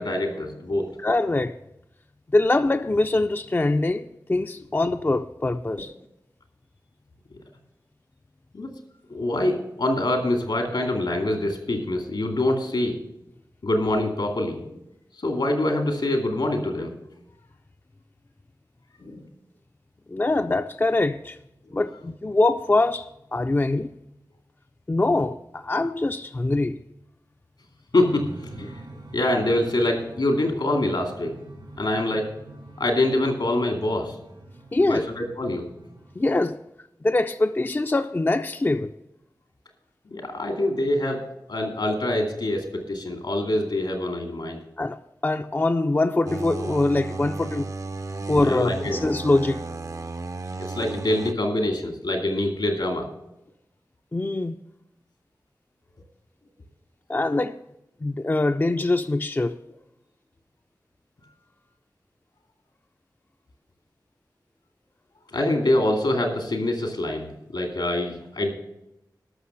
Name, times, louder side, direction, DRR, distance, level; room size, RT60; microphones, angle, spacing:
voice 1, 0.0-0.9 8.5-8.7 9.1-13.0 13.6-14.8 15.2-16.9 19.0-19.2 27.9-28.8 29.1-31.4 31.8-32.3 32.8-34.1 34.9-35.7 40.1-41.2 41.5-44.6 48.4-49.0 50.6-53.1 65.3-67.3 67.5-68.5, left 1 dB, 80° left, 2.4 m, -25 dB
voice 2, 1.0-1.6 2.3-5.9 20.1-21.4 21.7-23.9 24.9-26.8 34.7-35.1 36.2-36.6 37.0-38.9 44.8-47.7 48.3-49.7 54.1-54.6 57.1-57.6 58.0-59.6, left 2 dB, 25° left, 0.4 m, -23 dB
sound 1, 27.9-36.4, right 2 dB, 80° right, 2.4 m, -45 dB
sound 2, 46.3-51.3, right 3 dB, 45° right, 0.6 m, -34 dB
13.0 x 6.1 x 7.6 m
wide cardioid pair, 65°, 8 cm